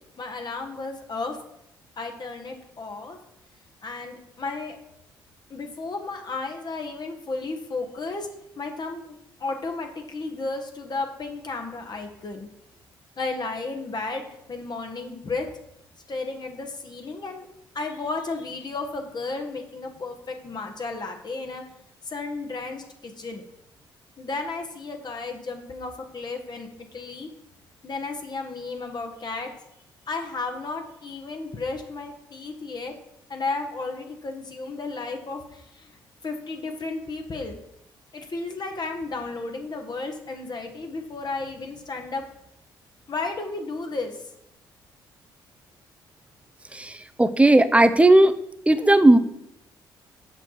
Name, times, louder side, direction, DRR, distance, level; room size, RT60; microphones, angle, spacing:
voice 1, 0.2-1.4 2.0-3.2 3.8-4.8 5.5-8.3 8.6-9.1 9.4-12.5 13.2-15.5 16.1-17.5 17.7-21.6 22.0-23.4 24.2-27.3 27.8-29.5 30.1-32.9 33.3-35.9 36.2-37.6 38.1-42.2 43.1-44.2, left 3 dB, 35° left, 3 dB, 1.6 m, -33 dB
voice 2, 46.7-48.3 48.7-49.2, right 1 dB, 10° right, 12 dB, 0.9 m, -16 dB
7.9 x 7.2 x 4.7 m, 0.78 s
figure-of-eight pair, 45°, 12 cm